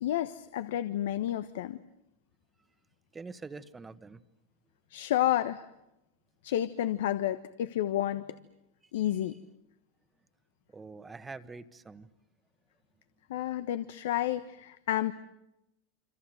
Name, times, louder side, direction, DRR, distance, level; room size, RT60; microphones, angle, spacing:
voice 1, 0.0-1.8 4.9-5.6 6.4-8.2 8.9-9.3 13.3-15.1, left 12 dB, 75° left, 12 dB, 1.1 m, -30 dB
voice 2, 3.1-4.2 10.7-12.1, right 4 dB, 15° right, 12 dB, 1.4 m, -45 dB
26.5 x 26.5 x 7.9 m, 0.91 s
hypercardioid pair, 115°, 0 cm